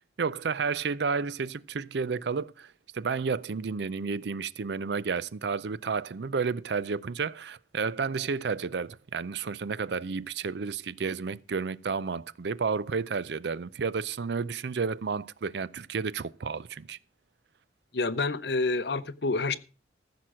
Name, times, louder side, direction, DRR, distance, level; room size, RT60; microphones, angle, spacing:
voice 1, 0.0-17.0, right 5 dB, 65° right, 0.5 m, -31 dB
voice 2, 17.9-19.6, left 3 dB, 60° left, 0.7 m, -28 dB
14.5 x 6.1 x 6.2 m
head